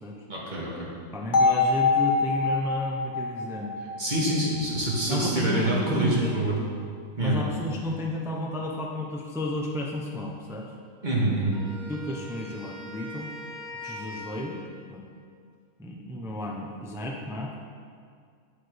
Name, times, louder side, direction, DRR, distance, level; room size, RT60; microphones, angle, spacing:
voice 1, 0.3-0.9 4.0-6.6 7.2-7.4 11.0-11.6, right 1 dB, 35° right, -5 dB, 1.8 m, -26 dB
voice 2, 1.1-3.7 5.1-6.6 7.2-10.7 11.9-13.3 13.8-14.6 14.9-15.0 15.8-17.5, left 1 dB, 5° right, -1 dB, 0.4 m, -32 dB
sound 1, 1.3-5.3, left 4 dB, 40° left, 0.8 m, -25 dB
Wind instrument woodwind instrument, 11.5-14.8, left 1 dB, 65° right, 2.2 m, -42 dB
8.2 x 8.1 x 3.5 m, 2.2 s
omnidirectional pair, 1.4 m